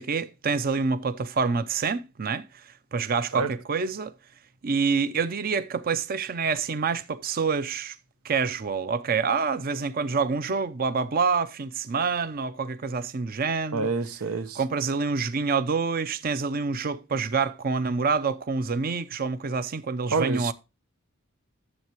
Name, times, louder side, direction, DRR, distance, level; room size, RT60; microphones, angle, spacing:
voice 1, 0.0-4.1 4.6-8.0 8.2-13.9 14.6-20.5, right 5 dB, 45° right, 0.5 m, -27 dB
voice 2, 13.7-14.6 20.1-20.5, right 4 dB, 90° right, 0.9 m, -27 dB
12.5 x 7.3 x 2.9 m
head